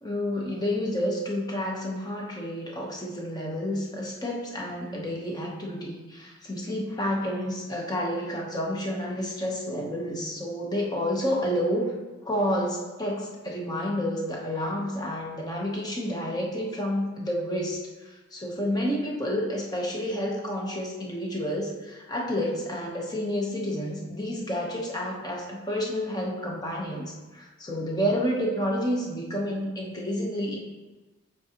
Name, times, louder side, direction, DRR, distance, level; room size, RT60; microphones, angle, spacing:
voice 1, 0.0-11.9 12.2-30.6, equal, 20° left, -2 dB, 0.9 m, -30 dB
7.3 x 4.8 x 2.9 m, 1.2 s
head